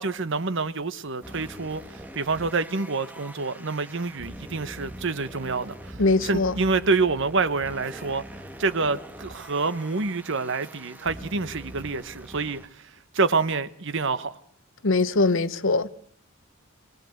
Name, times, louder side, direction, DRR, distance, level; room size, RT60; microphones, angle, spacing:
voice 1, 0.0-1.8 2.1-8.2 8.6-12.6 13.1-14.4, right 4 dB, 60° right, 1.1 m, -27 dB
sound 1, 1.2-12.7, right 1 dB, 10° right, 1.4 m, -43 dB
voice 2, 6.0-6.6 14.8-15.9, left 3 dB, 65° left, 1.0 m, -22 dB
23.5 x 17.5 x 7.9 m
head